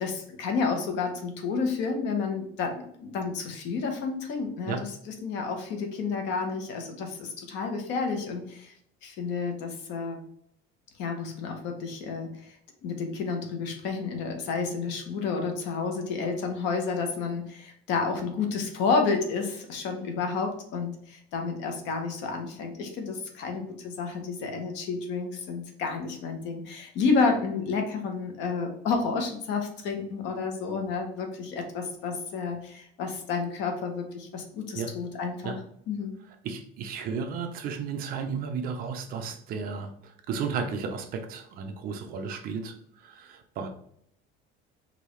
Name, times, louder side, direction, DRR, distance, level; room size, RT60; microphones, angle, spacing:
voice 1, 0.0-8.7 9.0-10.2 11.0-12.5 12.8-35.5 35.9-36.1, left 4 dB, 60° left, 4 dB, 1.0 m, -30 dB
voice 2, 36.4-43.7, right 5 dB, 45° right, 6 dB, 0.6 m, -34 dB
5.1 x 2.6 x 3.1 m, 0.67 s
cardioid pair, 180°, 21 cm